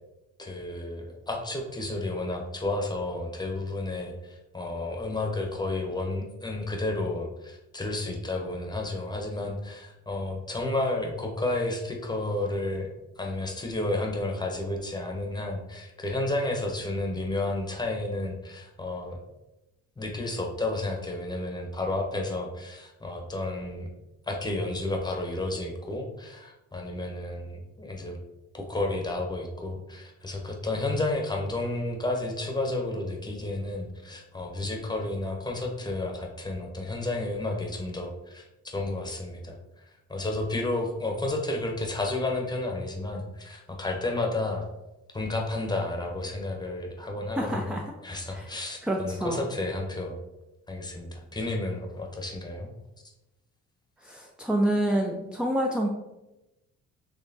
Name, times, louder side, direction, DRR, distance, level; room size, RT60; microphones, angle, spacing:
voice 1, 0.4-12.9 13.2-19.2 20.0-23.9 24.3-28.2 28.5-44.6 45.1-50.2 50.7-52.7, left 2 dB, 15° left, 1 dB, 0.7 m, -31 dB
voice 2, 47.4-47.8 48.3-48.5 48.8-49.5 54.0-55.9, right 1 dB, 5° right, 0 dB, 0.3 m, -27 dB
4.2 x 2.9 x 2.7 m, 0.98 s
cardioid pair, 90°, 30 cm